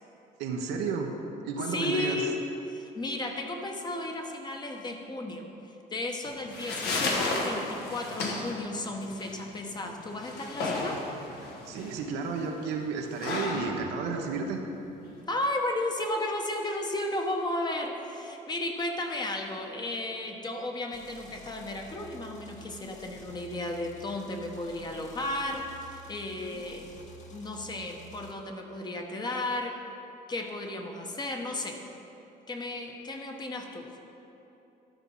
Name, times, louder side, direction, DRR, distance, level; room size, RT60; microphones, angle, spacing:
voice 1, 0.4-2.2 11.6-14.6, right 4 dB, 90° right, 3 dB, 1.0 m, -32 dB
voice 2, 1.7-2.4 2.6-5.5 5.9-11.0 15.3-26.9 27.3-29.8 30.3-31.8 32.5-33.9, left 1 dB, 25° left, 3 dB, 1.0 m, -34 dB
sound 1, 6.3-15.3, left 2 dB, 75° left, 1.4 m, -34 dB
sound 2, 20.9-28.3, equal, 45° left, 1.2 m, -50 dB
12.5 x 4.7 x 5.5 m, 3.0 s
cardioid pair, 110°, 17 cm